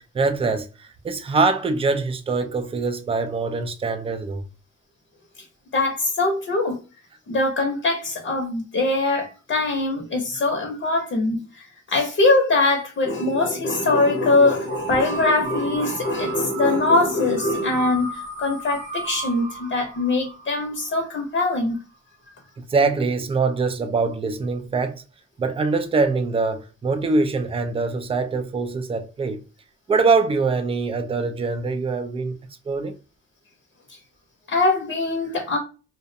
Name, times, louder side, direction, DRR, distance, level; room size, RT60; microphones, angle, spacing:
voice 1, 0.0-4.5 22.6-25.0 25.4-29.4 29.9-32.4 32.7-32.9, right 4 dB, 20° right, 0.4 m, -23 dB
voice 2, 5.7-6.8 7.3-21.8 34.5-35.6, left 2 dB, 40° left, 0.7 m, -22 dB
sound 1, 14.6-21.4, right 3 dB, 75° right, 0.8 m, -35 dB
2.4 x 2.0 x 2.6 m
cardioid pair, 90°, 30 cm